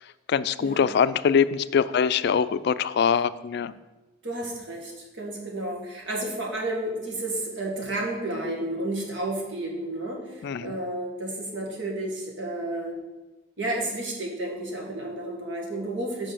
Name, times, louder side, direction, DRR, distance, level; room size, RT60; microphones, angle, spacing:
voice 1, 0.3-3.7 10.4-10.7, left 7 dB, 60° left, 14 dB, 0.3 m, -23 dB
voice 2, 4.2-13.0 13.6-16.3, right 1 dB, 70° right, -1 dB, 1.8 m, -31 dB
5.6 x 5.5 x 6.8 m, 1.1 s
head